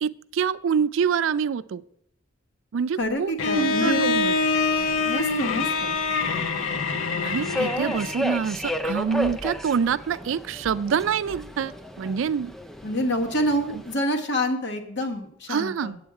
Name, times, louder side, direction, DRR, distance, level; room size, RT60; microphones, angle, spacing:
voice 1, 0.0-1.8 2.7-4.3 7.2-11.7 12.0-12.5 13.7-13.8 15.5-16.0, right 7 dB, 70° right, 16 dB, 0.4 m, -26 dB
voice 2, 3.0-4.2 5.0-6.0 12.8-16.0, equal, 60° left, 3 dB, 1.2 m, -27 dB
Bowed string instrument, 3.4-8.3, left 4 dB, 85° left, 0.7 m, -25 dB
Subway metro underground, 3.4-13.9, left 1 dB, ahead, 0.3 m, -34 dB
8.5 x 7.8 x 4.7 m, 0.72 s
head